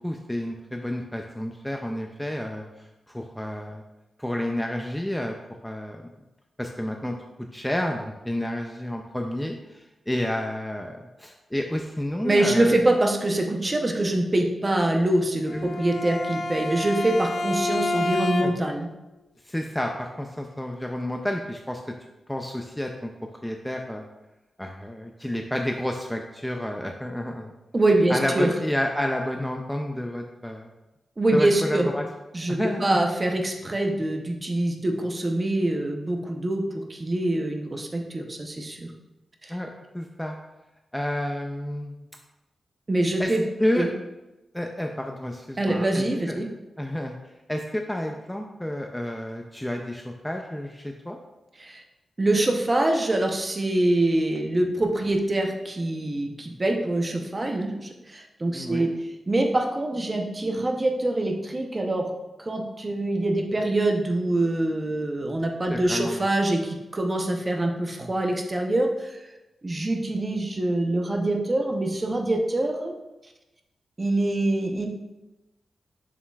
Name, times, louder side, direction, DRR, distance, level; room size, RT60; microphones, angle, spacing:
voice 1, 0.0-3.8 4.2-5.4 5.6-6.1 6.6-7.2 7.5-12.9 15.5-15.7 18.4-18.5 19.4-21.9 22.3-23.1 23.4-24.1 24.6-27.5 28.1-30.7 31.3-32.1 32.5-33.0 39.5-39.7 39.9-40.4 40.9-41.9 43.2-43.3 43.6-43.9 44.5-46.4 46.8-47.2 47.5-51.2 58.5-58.9 65.7-66.3, left 1 dB, 5° left, 3 dB, 0.4 m, -30 dB
voice 2, 12.2-18.9 27.7-28.5 31.2-31.9 32.3-38.9 39.4-39.6 42.9-43.4 43.8-43.9 45.6-46.5 51.6-51.8 52.2-58.9 59.3-62.1 62.4-69.2 69.6-72.9 74.0-74.9, right 1 dB, 25° right, 2 dB, 0.7 m, -24 dB
Bowed string instrument, 15.5-18.9, left 2 dB, 60° left, 0.6 m, -28 dB
7.1 x 6.6 x 2.3 m, 1.0 s
wide cardioid pair, 150°, 0 cm